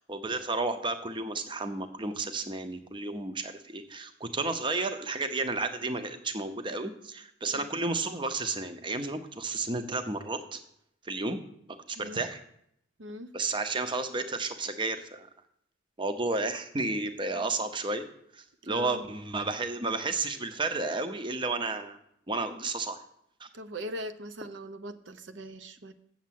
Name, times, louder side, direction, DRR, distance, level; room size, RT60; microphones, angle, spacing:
voice 1, 0.0-10.6 11.0-11.4 11.9-12.4 13.3-15.3 16.0-18.0 18.3-22.0 22.3-23.0 23.4-23.5, right 3 dB, 25° right, 9 dB, 0.7 m, -32 dB
voice 2, 13.0-13.3 18.6-19.0 23.5-25.9, equal, 70° right, 10 dB, 0.6 m, -40 dB
7.2 x 7.2 x 7.5 m, 0.72 s
head